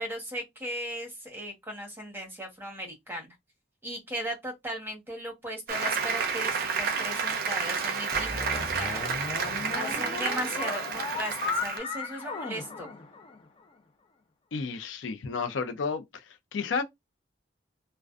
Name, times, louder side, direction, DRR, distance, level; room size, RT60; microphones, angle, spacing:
voice 1, 0.0-3.3 3.8-9.0 9.7-12.9, equal, 10° right, 1.0 m, -37 dB
Applause, 5.7-11.8, right 5 dB, 55° right, 0.5 m, -30 dB
sound 1, 8.1-13.6, left 3 dB, 30° left, 0.4 m, -36 dB
voice 2, 14.5-16.2 16.5-16.8, left 5 dB, 80° left, 0.5 m, -31 dB
2.4 x 2.1 x 2.4 m
head